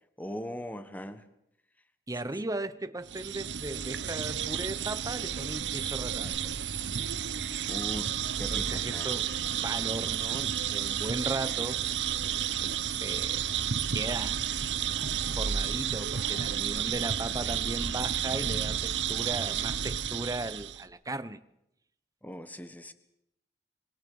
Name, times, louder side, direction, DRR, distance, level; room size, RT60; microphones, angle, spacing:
voice 1, 0.2-1.2 2.2-2.3 7.7-8.1 8.4-9.1 22.2-22.9, equal, 10° left, 1.4 m, -39 dB
voice 2, 2.1-6.4 8.3-11.8 12.6-13.5 13.9-14.4 15.3-21.4, right 2 dB, 20° right, 1.0 m, -37 dB
sound 1, 3.1-20.8, right 9 dB, 90° right, 1.0 m, -31 dB
25.5 x 24.5 x 5.6 m
head